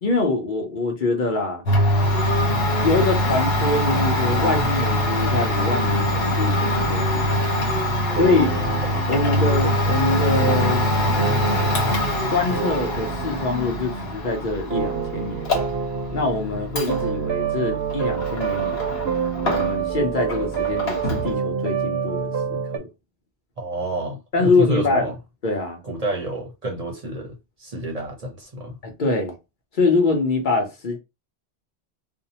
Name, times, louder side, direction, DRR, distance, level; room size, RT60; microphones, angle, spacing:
voice 1, 0.0-1.7 2.8-7.5 8.2-8.5 9.1-10.9 12.3-15.5 16.1-19.0 19.4-22.9 24.3-25.1 25.4-25.8 28.8-29.4 29.7-31.0, left 3 dB, 55° left, 0.9 m, -24 dB
Domestic sounds home sounds, 1.6-20.0 20.3-21.3, equal, 70° left, 1.1 m, -23 dB
sound 1, 8.1-22.8, right 7 dB, 80° right, 0.8 m, -29 dB
voice 2, 8.4-9.2 23.6-25.1 25.8-28.8, right 1 dB, 45° right, 0.7 m, -30 dB
2.7 x 2.0 x 2.7 m
omnidirectional pair, 1.1 m